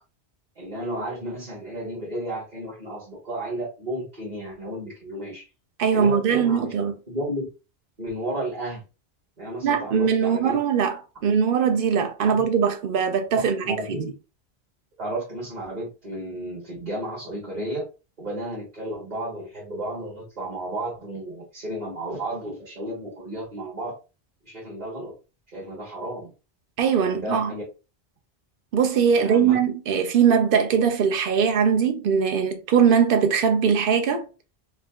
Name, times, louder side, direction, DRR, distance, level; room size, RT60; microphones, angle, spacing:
voice 1, 0.6-5.4 5.9-6.7 7.1-7.4 8.0-8.8 9.4-10.6 12.3-12.4 13.6-14.1 15.0-17.8 18.2-23.9 24.4-25.1 25.5-26.3 26.9-27.6 29.2-29.6, right 1 dB, 40° right, 1.4 m, -33 dB
voice 2, 5.8-6.9 9.6-11.0 11.2-14.0 26.8-27.5 28.7-34.2, right 7 dB, 60° right, 0.8 m, -21 dB
5.0 x 2.6 x 2.3 m
omnidirectional pair, 1.1 m